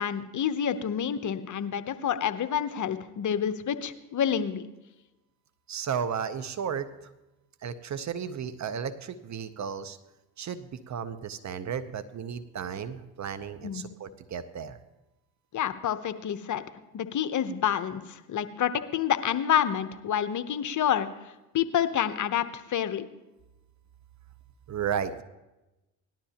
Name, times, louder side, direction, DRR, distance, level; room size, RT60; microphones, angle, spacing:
voice 1, 0.0-4.6 13.6-13.9 15.5-16.6 16.9-21.1 21.5-23.0, left 9 dB, 40° left, 11 dB, 0.8 m, -28 dB
voice 2, 5.7-7.1 7.6-10.0 10.4-14.8 24.7-25.2, right 7 dB, 35° right, 13 dB, 0.8 m, -34 dB
18.0 x 12.0 x 2.9 m, 1.0 s
hypercardioid pair, 65°, 48 cm